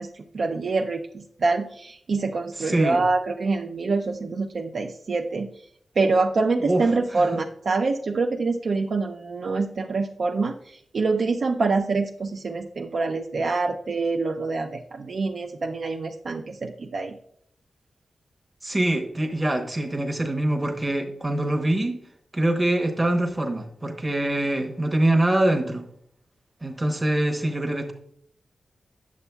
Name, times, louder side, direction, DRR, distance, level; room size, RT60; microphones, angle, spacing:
voice 1, 0.0-5.5 6.0-17.2, right 3 dB, 55° right, 3 dB, 0.4 m, -25 dB
voice 2, 2.6-3.0 6.6-6.8 7.1-7.3 18.6-22.0 22.3-25.9 26.6-27.9, right 1 dB, 15° right, 3 dB, 0.8 m, -24 dB
8.3 x 7.0 x 2.2 m, 0.67 s
wide cardioid pair, 155°, 0 cm